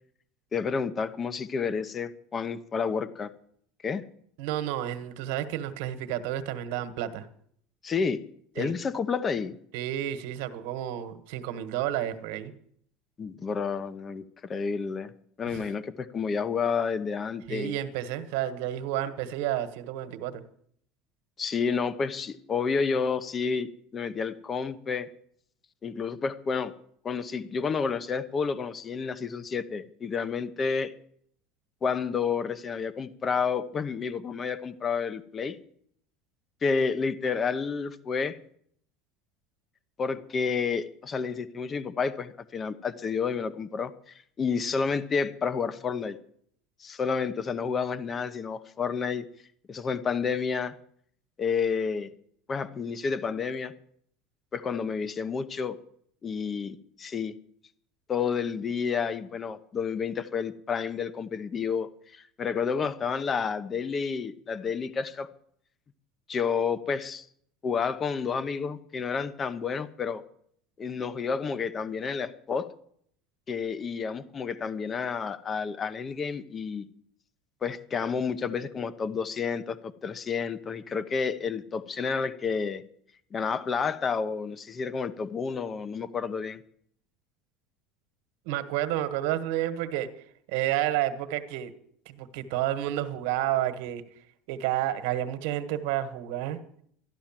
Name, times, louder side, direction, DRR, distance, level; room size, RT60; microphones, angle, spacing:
voice 1, 0.5-3.3 3.8-4.0 7.8-8.2 8.5-9.5 13.2-15.1 15.4-17.8 21.4-25.1 25.8-26.7 27.0-30.9 31.8-35.6 36.6-38.4 40.0-46.2 46.8-49.2 49.7-50.7 51.4-52.1 52.5-53.7 54.5-55.8 56.2-57.4 58.1-65.3 66.3-67.3 67.6-70.2 70.8-72.7 73.5-76.9 77.6-82.8 83.3-86.6, left 5 dB, 20° left, 15 dB, 0.8 m, -30 dB
voice 2, 4.4-7.3 8.6-8.7 9.7-12.5 15.5-15.6 17.5-20.4 88.4-90.1 90.5-91.7 92.0-94.0 94.5-96.6, right 12 dB, 70° right, 11 dB, 1.5 m, -30 dB
12.5 x 12.0 x 7.4 m, 0.66 s
cardioid pair, 150°, 0 cm